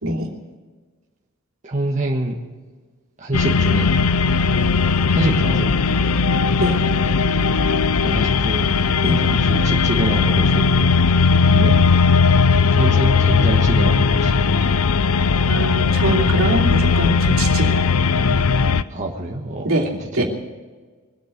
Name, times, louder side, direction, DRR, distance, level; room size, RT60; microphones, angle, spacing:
voice 1, 1.6-2.4 3.2-4.0 5.1-5.7 8.0-11.0 11.4-11.8 12.7-14.6 18.9-19.7 20.0-20.3, right 1 dB, 35° right, -1 dB, 1.4 m, -26 dB
sound 1, 3.3-18.8, left 4 dB, 85° left, 0.6 m, -17 dB
voice 2, 15.5-17.8 19.6-20.3, right 1 dB, 70° right, -1 dB, 2.9 m, -23 dB
23.0 x 8.6 x 6.7 m, 1.4 s
head